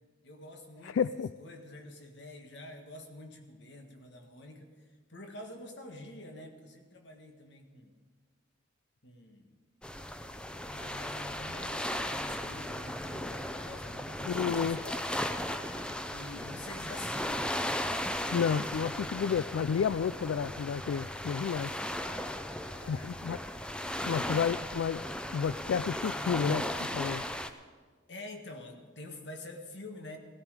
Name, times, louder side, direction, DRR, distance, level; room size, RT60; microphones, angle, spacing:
voice 1, 0.2-1.1 1.4-4.7 5.1-7.9 9.0-9.5 10.7-15.5 16.1-17.4 22.7-23.2 28.1-30.2, left 2 dB, 65° left, 4 dB, 1.7 m, -47 dB
voice 2, 0.8-1.3 14.3-14.8 18.3-21.7 22.9-23.4 24.1-25.0 25.3-27.2, left 7 dB, 90° left, 15 dB, 0.3 m, -31 dB
sound 1, 9.8-27.5, left 1 dB, 5° left, 0.5 m, -36 dB
17.0 x 13.0 x 5.0 m, 1.5 s
head